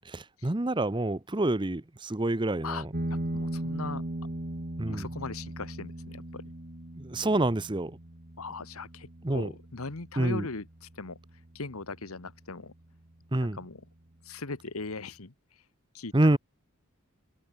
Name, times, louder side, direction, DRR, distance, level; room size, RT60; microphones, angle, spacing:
voice 1, 0.1-2.9 4.8-5.1 7.0-7.9 9.2-9.5 10.2-10.5 13.3-13.6 16.1-16.4, right 1 dB, 20° right, 0.8 m, -27 dB
sound 1, 2.9-11.9, right 1 dB, 40° right, 1.8 m, -38 dB
voice 2, 3.3-4.0 4.9-6.4 8.4-11.2 11.5-12.7 13.4-13.8 14.2-15.3 15.9-16.4, left 3 dB, 80° left, 1.5 m, -39 dB
head